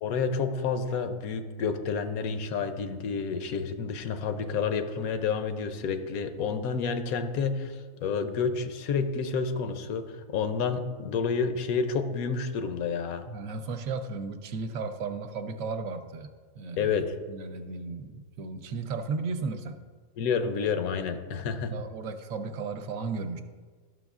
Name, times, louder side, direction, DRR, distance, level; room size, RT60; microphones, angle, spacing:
voice 1, 0.0-13.2 16.8-17.2 20.2-21.7, left 5 dB, 90° left, 9 dB, 1.1 m, -29 dB
voice 2, 13.3-16.3 16.5-16.9 17.3-19.8 21.5-23.4, right 4 dB, 75° right, 7 dB, 1.0 m, -35 dB
11.5 x 6.1 x 2.4 m, 1.5 s
omnidirectional pair, 1.5 m